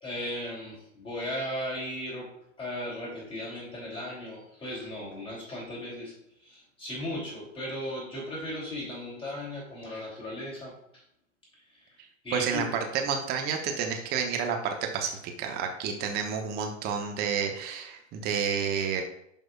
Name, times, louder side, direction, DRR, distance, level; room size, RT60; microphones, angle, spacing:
voice 1, 0.0-2.3 2.6-6.1 6.4-10.7 12.2-12.7, left 1 dB, 15° left, -5 dB, 3.1 m, -36 dB
voice 2, 12.3-19.0, right 6 dB, 25° right, 3 dB, 1.0 m, -30 dB
11.0 x 5.5 x 2.5 m, 0.73 s
figure-of-eight pair, 100°, 38 cm